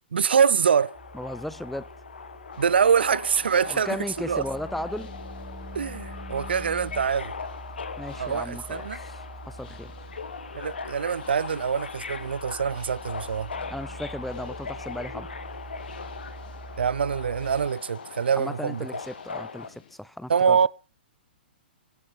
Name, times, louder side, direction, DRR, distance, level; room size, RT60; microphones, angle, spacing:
voice 1, 0.1-1.0 2.6-4.0 4.3-4.4 5.7-7.3 8.2-9.0 10.5-13.5 16.8-18.9 20.3-20.7, right 7 dB, 70° right, 0.6 m, -24 dB
Subway metro underground, 0.7-19.7, left 5 dB, 75° left, 1.9 m, -40 dB
sound 1, 0.9-17.7, right 1 dB, 20° left, 5.6 m, -44 dB
voice 2, 1.1-1.9 3.7-5.1 8.0-9.2 9.5-9.9 13.7-15.3 18.4-20.7, left 1 dB, ahead, 0.8 m, -35 dB
sound 2, 2.5-20.0, left 8 dB, 55° left, 4.3 m, -55 dB
17.0 x 10.5 x 5.8 m
figure-of-eight pair, 115°, 6 cm